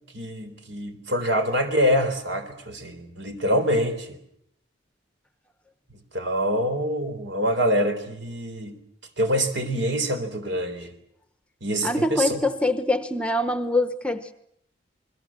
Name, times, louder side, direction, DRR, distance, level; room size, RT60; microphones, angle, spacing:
voice 1, 0.1-4.2 6.1-8.8 9.2-10.9 11.6-12.4, equal, 70° right, 7 dB, 3.9 m, -25 dB
voice 2, 11.8-14.3, left 1 dB, 5° left, 11 dB, 1.0 m, -24 dB
28.0 x 21.5 x 7.5 m, 0.73 s
head